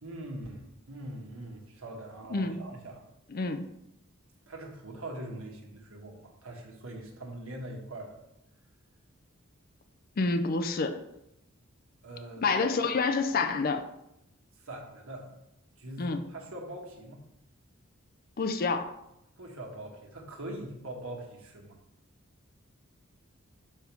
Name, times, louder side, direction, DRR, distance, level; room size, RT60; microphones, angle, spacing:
voice 1, 0.0-3.0 4.5-8.2 12.0-12.7 14.6-15.3 15.8-17.2 19.4-21.8, right 1 dB, 80° right, 1 dB, 1.4 m, -42 dB
voice 2, 3.3-3.7 10.2-11.0 12.4-13.8 16.0-16.2 18.4-18.9, left 4 dB, 45° left, 7 dB, 0.5 m, -28 dB
5.5 x 3.6 x 5.9 m, 0.84 s
head